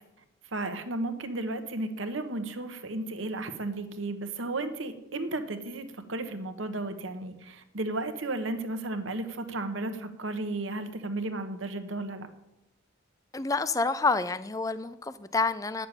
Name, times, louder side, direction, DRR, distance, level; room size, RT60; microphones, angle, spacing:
voice 1, 0.5-12.3, right 2 dB, 75° right, 9 dB, 1.2 m, -34 dB
voice 2, 13.3-15.9, left 3 dB, 15° left, 14 dB, 0.4 m, -28 dB
9.9 x 6.8 x 8.9 m, 0.89 s
head